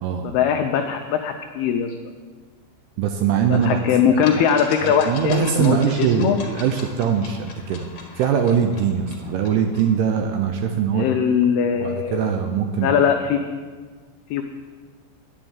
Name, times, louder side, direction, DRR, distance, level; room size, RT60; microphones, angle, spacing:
voice 1, 0.2-1.9 3.5-6.4 10.9-12.3 12.8-13.4 14.3-14.4, left 8 dB, 85° left, 4 dB, 2.2 m, -21 dB
voice 2, 3.0-4.4 4.8-11.1 11.8-12.9, right 7 dB, 80° right, 4 dB, 2.4 m, -22 dB
sound 1, 3.6-3.7 4.2-9.9, left 4 dB, 55° left, 2.7 m, -39 dB
10.0 x 7.6 x 9.1 m, 1.5 s
omnidirectional pair, 5.3 m